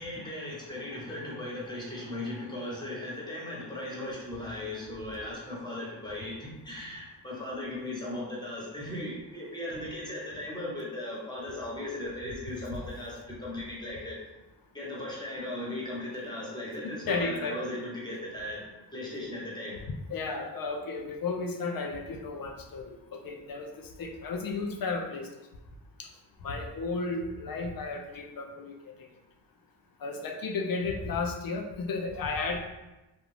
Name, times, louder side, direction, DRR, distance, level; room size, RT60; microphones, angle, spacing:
voice 1, 0.0-14.2 14.7-18.6 18.9-19.8, left 1 dB, 10° left, -5 dB, 1.2 m, -37 dB
voice 2, 16.8-17.6 20.1-25.3 26.0-26.1 26.4-28.7 30.0-32.6, left 3 dB, 50° left, 4 dB, 0.5 m, -33 dB
2.5 x 2.2 x 3.2 m, 1.0 s
cardioid pair, 60°, 45 cm